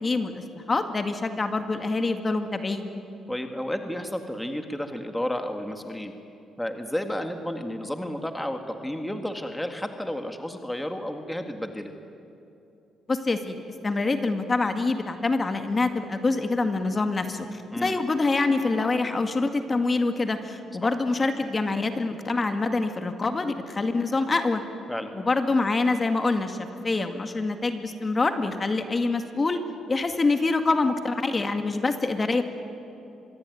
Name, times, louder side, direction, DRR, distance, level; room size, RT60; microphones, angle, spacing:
voice 1, 0.0-2.9 13.1-24.6 25.1-29.6 29.9-32.4, left 3 dB, 30° left, 7 dB, 2.1 m, -25 dB
voice 2, 3.3-6.1 6.6-11.9 17.7-17.9 20.8-20.9 24.9-25.1, left 1 dB, 5° left, 6 dB, 1.9 m, -32 dB
25.0 x 22.0 x 9.5 m, 2.8 s
cardioid pair, 90°, 0 cm